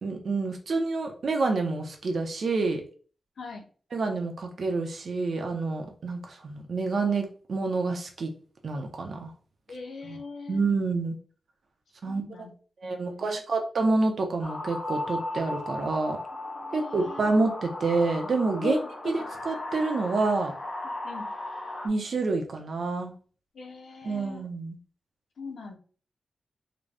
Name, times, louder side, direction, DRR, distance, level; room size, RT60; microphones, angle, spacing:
voice 1, 0.0-2.8 3.9-8.3 8.6-9.3 10.0-10.2 10.5-11.1 12.0-12.5 12.8-16.2 16.7-18.8 19.0-20.5 21.8-23.1 24.0-24.8, right 3 dB, 65° right, 3 dB, 0.8 m, -28 dB
voice 2, 9.7-10.7 12.0-12.5 12.8-13.4 16.5-17.2 18.6-19.1 21.0-21.3 23.5-24.4 25.4-25.8, left 4 dB, 85° left, 3 dB, 0.7 m, -39 dB
sound 1, 14.4-21.9, left 2 dB, 35° left, 1.0 m, -36 dB
3.9 x 2.3 x 3.4 m, 0.40 s
wide cardioid pair, 110°, 0 cm